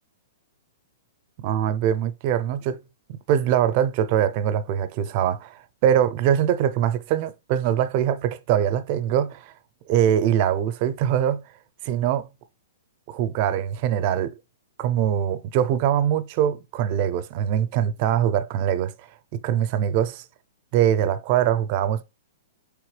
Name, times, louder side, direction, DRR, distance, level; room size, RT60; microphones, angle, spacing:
voice 1, 1.4-2.8 3.1-9.5 9.9-11.4 11.8-12.3 13.1-14.3 14.8-18.9 19.4-20.2 20.7-22.0, right 10 dB, 45° right, 0.5 m, -23 dB
4.5 x 3.4 x 3.2 m
hypercardioid pair, 125°, 0 cm